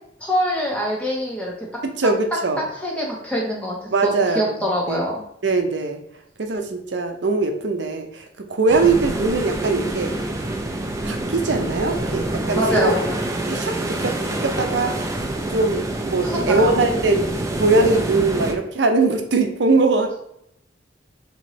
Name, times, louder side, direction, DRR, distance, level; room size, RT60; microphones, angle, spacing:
voice 1, 0.2-1.7 2.7-5.2 12.5-13.2 16.2-16.8, equal, 5° left, -3 dB, 1.1 m, -24 dB
voice 2, 1.8-2.6 3.9-4.4 4.9-5.0 5.4-6.0 6.4-8.2 8.5-10.1 11.1-12.9 13.5-14.9 15.5-17.3 17.6-20.2, right 3 dB, 70° right, 5 dB, 0.6 m, -21 dB
sound 1, 8.7-18.5, right 1 dB, 15° right, 0.5 m, -26 dB
4.3 x 3.1 x 3.1 m, 0.74 s
head